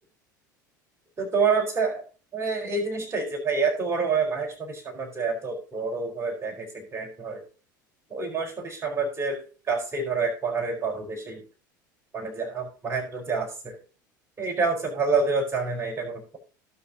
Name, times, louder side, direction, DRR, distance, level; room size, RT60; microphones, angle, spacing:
voice 1, 1.2-2.0 2.3-7.4 8.1-11.4 12.1-13.8 14.4-16.4, right 4 dB, 25° right, 1 dB, 4.6 m, -28 dB
17.5 x 6.0 x 2.9 m, 0.37 s
figure-of-eight pair, 70°, 11 cm